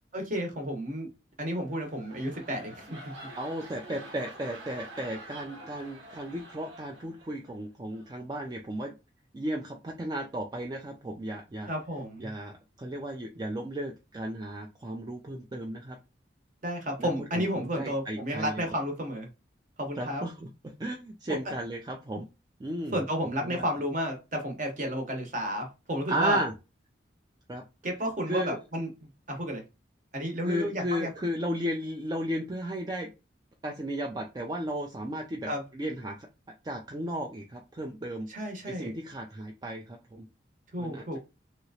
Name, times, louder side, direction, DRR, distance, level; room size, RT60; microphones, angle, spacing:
voice 1, 0.1-1.1 1.4-3.0 11.7-12.3 16.6-19.3 19.8-20.2 22.9-26.4 27.8-28.9 29.3-29.6 30.1-31.1 35.4-35.6 38.3-38.9 40.7-41.2, equal, 45° right, 3 dB, 0.9 m, -32 dB
sound 1, 1.6-7.5 7.9-8.2, right 2 dB, 85° right, 1.2 m, -47 dB
voice 2, 3.3-8.9 9.3-11.7 12.2-16.0 17.0-18.6 20.0-20.5 20.8-22.3 22.6-23.0 23.4-23.6 26.1-26.5 27.5-27.6 28.3-28.6 30.4-33.1 33.6-36.2 36.6-38.3 38.7-40.3 40.8-41.2, right 1 dB, 20° right, 2 dB, 0.3 m, -34 dB
3.2 x 2.9 x 2.7 m, 0.27 s
head